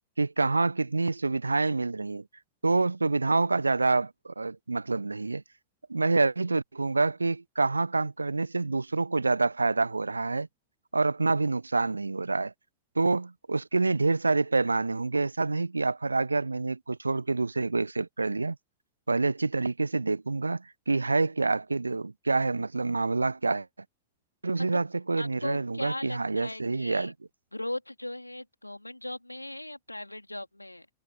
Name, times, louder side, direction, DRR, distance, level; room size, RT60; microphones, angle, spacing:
voice 1, 0.2-2.3 2.6-5.4 5.9-10.5 10.9-12.5 13.0-18.6 19.1-23.7 24.4-27.1, right 3 dB, 80° right, 0.4 m, -27 dB
voice 2, 25.1-27.1 27.5-30.9, left 1 dB, 85° left, 3.3 m, -38 dB
figure-of-eight pair, 90°, 0 cm